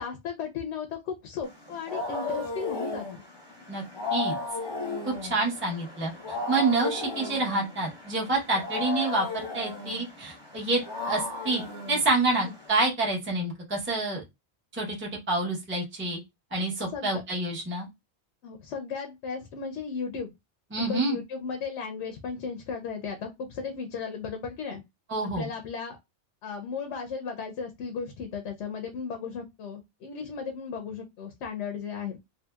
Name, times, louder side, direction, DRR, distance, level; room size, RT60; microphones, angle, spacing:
voice 1, 0.0-3.2 12.4-12.5 16.9-17.2 18.4-20.3 20.7-24.8 25.3-26.0 26.4-32.2, left 5 dB, 80° left, 0.9 m, -35 dB
Wild animals, 1.5-12.7, left 3 dB, 25° left, 0.8 m, -35 dB
voice 2, 5.0-10.8 11.1-14.2 14.7-16.2 16.5-17.9 20.7-21.2 25.1-25.5, right 2 dB, 10° right, 0.7 m, -28 dB
2.7 x 2.6 x 2.2 m
omnidirectional pair, 1.2 m